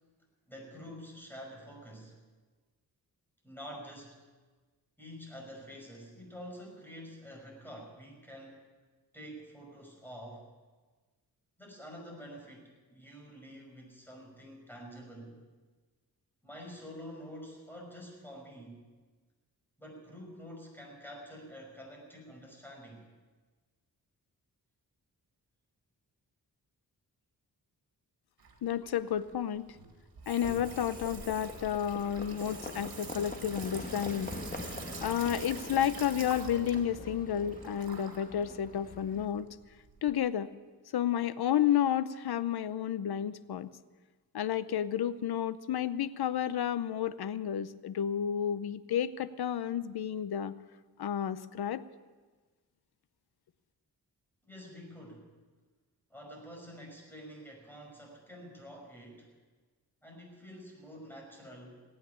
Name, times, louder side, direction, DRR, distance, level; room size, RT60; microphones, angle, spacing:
voice 1, 0.5-2.2 3.4-4.2 5.0-8.6 9.1-10.5 11.6-15.3 16.4-18.8 19.8-23.0 54.4-55.3 56.1-59.3 60.0-61.8, equal, 5° left, -1 dB, 5.9 m, -48 dB
Water tap faucet / Sink (filling or washing), 28.4-40.1, right 4 dB, 70° right, 2.6 m, -47 dB
voice 2, 28.6-29.7 30.3-34.3 35.0-39.6 40.0-40.5 40.9-43.7 44.3-50.5 51.0-51.8, left 9 dB, 80° left, 15 dB, 0.7 m, -31 dB
Livestock farm animals working animals, 30.6-39.3, left 2 dB, 20° left, 1.5 m, -44 dB
18.5 x 9.1 x 8.5 m, 1.3 s
wide cardioid pair, 85°, 37 cm